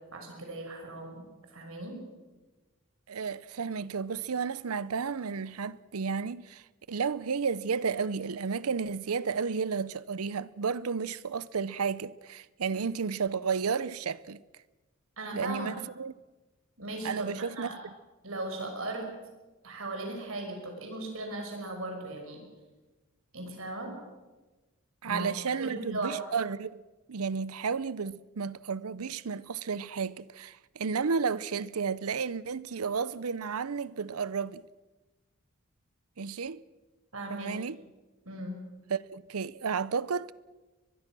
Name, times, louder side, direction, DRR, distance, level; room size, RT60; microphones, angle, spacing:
voice 1, 0.1-2.0 15.2-15.7 16.8-17.8 18.2-19.1 19.6-22.4 23.3-23.9 25.0-26.2 37.1-37.5 38.3-38.6, right 2 dB, 70° right, 5.7 m, -38 dB
voice 2, 3.1-14.4 15.3-16.1 17.0-17.7 25.0-26.8 27.1-34.6 36.2-36.7 37.3-37.8 38.9-40.3, right 5 dB, 90° right, 0.7 m, -32 dB
22.5 x 22.0 x 6.2 m
head